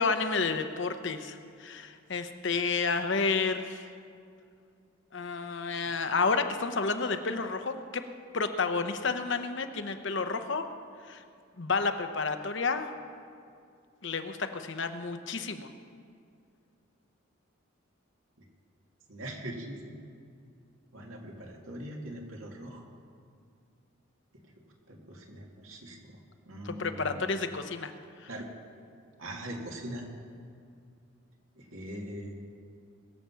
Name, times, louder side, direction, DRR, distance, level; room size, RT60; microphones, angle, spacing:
voice 1, 0.0-3.9 5.1-8.0 8.3-10.7 11.1-11.2 11.6-12.9 14.0-15.7 26.6-27.9, left 4 dB, 60° left, 8 dB, 0.8 m, -30 dB
voice 2, 19.1-20.0 20.9-22.8 24.9-26.2 26.5-27.2 28.3-28.5 29.2-30.1 31.6-32.3, right 1 dB, 80° right, 0 dB, 2.1 m, -41 dB
21.5 x 7.5 x 5.7 m, 2.4 s
head